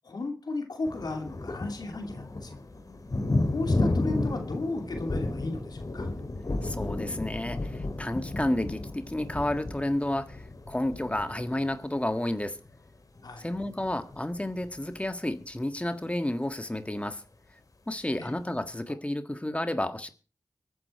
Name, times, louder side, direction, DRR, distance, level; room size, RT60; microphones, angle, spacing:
voice 1, 0.0-2.5 3.5-6.1 13.2-13.5 18.2-18.3, left 2 dB, 85° left, 2.7 m, -34 dB
sound 1, 0.8-12.0 12.3-12.7 13.2-13.3 13.5-14.8 17.0-17.1 18.9-19.0, left 2 dB, 60° left, 2.2 m, -32 dB
voice 2, 6.6-12.6 13.4-17.2 17.9-20.1, left 1 dB, 20° left, 1.6 m, -31 dB
23.5 x 10.0 x 4.5 m
cardioid pair, 40°, 7 cm